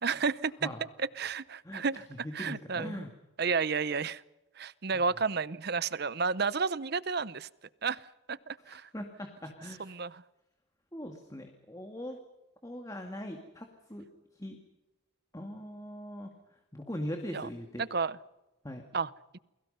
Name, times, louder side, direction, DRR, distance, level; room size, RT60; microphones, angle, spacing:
voice 1, 0.0-0.7 1.0-2.1 2.3-3.1 3.4-4.2 4.6-7.5 7.8-8.9 9.8-10.2 17.3-17.5 17.8-18.2 18.9-19.4, right 5 dB, 50° right, 18 dB, 0.7 m, -32 dB
voice 2, 1.6-3.1 4.9-5.0 8.7-10.0 10.9-12.2 12.6-14.1 14.3-14.6 15.3-16.3 16.7-17.8 18.6-18.8, left 1 dB, 15° left, 4 dB, 2.1 m, -41 dB
29.0 x 22.5 x 5.6 m, 1.0 s
head